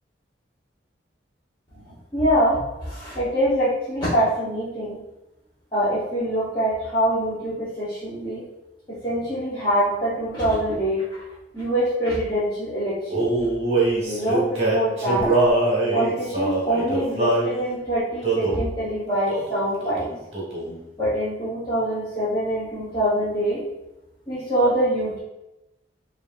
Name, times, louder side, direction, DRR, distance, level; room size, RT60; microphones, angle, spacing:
voice 1, 1.7-5.0 5.7-8.4 8.9-11.0 11.5-13.3 14.0-15.3 15.9-20.1 21.0-23.6 24.3-25.2, equal, 20° left, -13 dB, 1.0 m, -24 dB
Male singing, 13.1-17.5 18.2-18.7 19.3-19.6 19.8-20.8, right 2 dB, 30° right, 1.1 m, -23 dB
4.8 x 2.7 x 2.5 m, 0.94 s
head